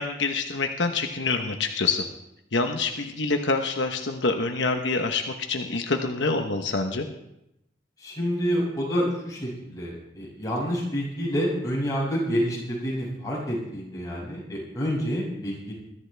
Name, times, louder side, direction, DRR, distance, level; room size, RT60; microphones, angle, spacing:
voice 1, 0.0-2.0 2.5-7.1, left 3 dB, 85° left, 4 dB, 1.1 m, -26 dB
voice 2, 8.0-15.7, equal, 20° left, -5 dB, 6.7 m, -28 dB
21.5 x 13.5 x 3.4 m, 0.84 s
head